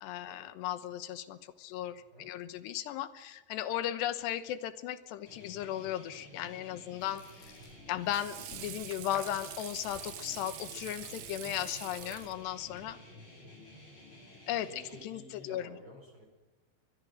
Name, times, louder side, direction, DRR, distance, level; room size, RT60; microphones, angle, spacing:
voice 1, 0.0-7.5 7.9-13.0 14.5-15.8, left 12 dB, 90° left, 12 dB, 3.3 m, -36 dB
sound 1, 5.3-15.0, left 1 dB, 30° left, 6.8 m, -53 dB
sound 2, 6.9-12.6, left 4 dB, 70° left, 7.3 m, -54 dB
Water / Sink (filling or washing), 7.5-12.9, right 14 dB, 75° right, 2.0 m, -46 dB
voice 2, 13.1-13.5 14.7-16.3, equal, 25° right, 2 dB, 4.8 m, -52 dB
22.5 x 22.0 x 6.5 m, 1.2 s
omnidirectional pair, 4.7 m